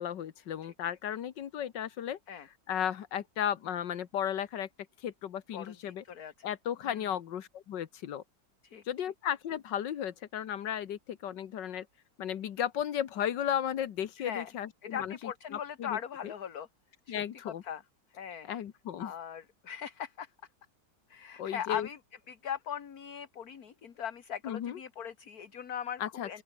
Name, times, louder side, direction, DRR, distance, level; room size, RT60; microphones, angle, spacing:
voice 1, 0.0-2.2 2.7-4.7 5.0-6.0 6.4-8.2 8.9-11.9 12.2-16.3 17.1-17.6 18.4-19.1 21.4-21.9 24.4-24.8 26.0-26.4, left 10 dB, 80° left, 1.8 m, -35 dB
voice 2, 5.5-6.5 6.9-7.1 8.6-8.8 14.2-14.5 14.8-16.7 17.1-17.8 18.1-18.5 19.0-20.3 21.1-22.0 22.3-26.4, left 8 dB, 60° left, 2.0 m, -40 dB
open air
omnidirectional pair, 1.9 m